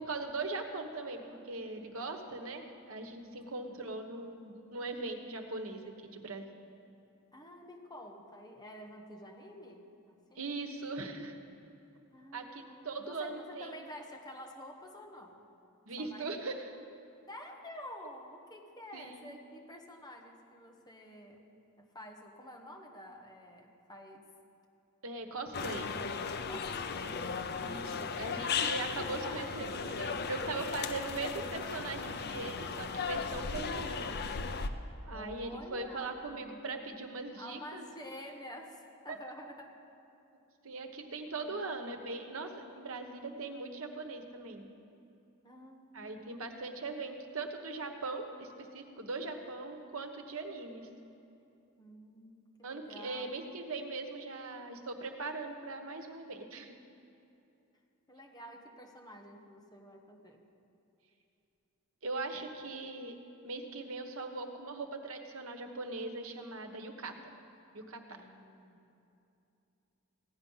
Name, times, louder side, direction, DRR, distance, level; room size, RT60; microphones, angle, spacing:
voice 1, 0.0-5.8 6.1-6.4 10.4-11.4 12.3-13.8 15.9-16.7 18.9-19.3 25.0-26.0 27.5-34.1 35.0-37.8 40.6-44.7 45.9-50.9 52.6-56.8 62.0-63.2 63.4-67.1 67.7-68.0, right 3 dB, 70° right, 5 dB, 1.2 m, -40 dB
voice 2, 7.3-10.4 12.1-15.4 16.0-16.3 17.3-21.5 21.8-24.3 26.5-29.7 35.1-36.6 37.4-39.7 41.4-41.6 45.4-46.5 51.8-53.4 58.1-60.4 68.1-68.8, equal, 20° left, 1 dB, 1.4 m, -50 dB
sound 1, 25.5-34.7, left 5 dB, 50° left, 0.6 m, -36 dB
16.0 x 9.8 x 5.6 m, 2.7 s
head